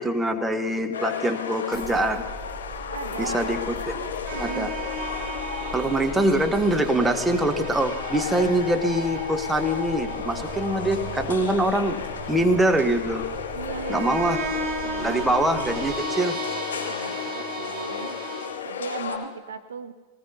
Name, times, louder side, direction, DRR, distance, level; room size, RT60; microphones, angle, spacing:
voice 1, 0.0-2.2 3.2-4.1 4.4-4.7 5.7-12.0 12.3-13.2 13.9-14.4 15.0-16.4, right 1 dB, 5° right, 5 dB, 1.1 m, -24 dB
sound 1, 0.9-19.2, left 7 dB, 65° left, 2.5 m, -34 dB
sound 2, 1.7-15.9, left 1 dB, 80° right, 3.1 m, -41 dB
voice 2, 2.9-3.5 4.3-4.7 13.5-14.4 14.8-15.2 16.9-18.2 18.6-19.9, right 6 dB, 65° right, 11 dB, 0.6 m, -36 dB
sound 3, 4.3-18.5, right 2 dB, 40° right, 4.5 m, -35 dB
20.0 x 18.5 x 2.8 m, 1.3 s
figure-of-eight pair, 90°, 0 cm